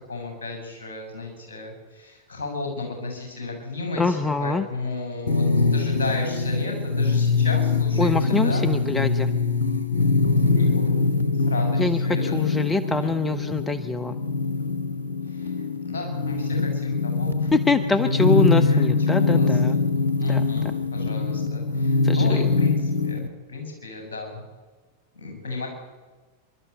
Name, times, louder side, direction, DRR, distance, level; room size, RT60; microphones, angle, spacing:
voice 1, 0.1-5.4 5.7-8.7 10.5-10.9 11.3-13.1 15.2-17.5 18.5-24.4 25.1-25.7, left 3 dB, 60° left, 3 dB, 7.3 m, -34 dB
voice 2, 4.0-4.7 8.0-9.3 11.8-14.2 17.5-19.8 20.3-20.4 22.0-22.5, left 3 dB, 15° left, 11 dB, 0.8 m, -24 dB
sound 1, 5.3-23.3, left 4 dB, 80° left, 1.1 m, -23 dB
25.5 x 12.5 x 8.3 m, 1.3 s
figure-of-eight pair, 90°, 0 cm